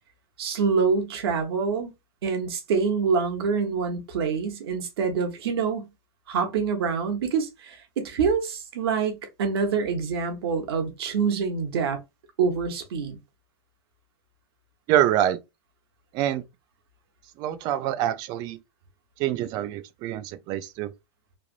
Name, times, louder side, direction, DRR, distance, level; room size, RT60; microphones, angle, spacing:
voice 1, 0.4-1.9 2.2-5.9 6.3-12.0 12.4-13.2, right 5 dB, 70° right, 1.1 m, -26 dB
voice 2, 14.9-15.4 16.1-16.4 17.4-18.6 19.2-20.9, right 12 dB, 30° right, 0.3 m, -25 dB
3.2 x 2.4 x 2.4 m
supercardioid pair, 150°, 13 cm